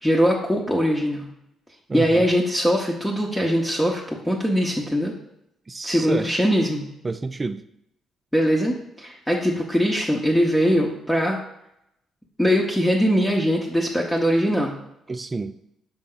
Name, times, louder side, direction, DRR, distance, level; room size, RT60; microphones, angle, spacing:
voice 1, 0.0-1.3 1.9-5.1 5.8-6.9 8.3-11.4 12.4-14.7, equal, 5° left, -3 dB, 0.9 m, -21 dB
voice 2, 1.9-2.3 5.7-6.3 7.0-7.6 15.1-15.5, right 3 dB, 25° right, 12 dB, 0.4 m, -29 dB
5.9 x 4.3 x 3.8 m, 0.80 s
cardioid pair, 90°, 0 cm